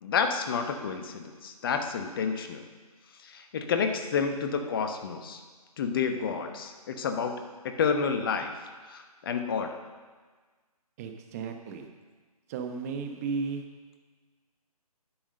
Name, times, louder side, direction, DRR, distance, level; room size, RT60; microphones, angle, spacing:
voice 1, 0.0-2.6 3.2-5.4 5.8-7.3 7.6-8.5 8.9-9.8, left 6 dB, 35° left, 6 dB, 1.0 m, -30 dB
voice 2, 11.0-11.9 12.5-13.6, right 5 dB, 25° right, 5 dB, 0.9 m, -34 dB
10.0 x 6.1 x 6.6 m, 1.4 s
figure-of-eight pair, 145°, 20 cm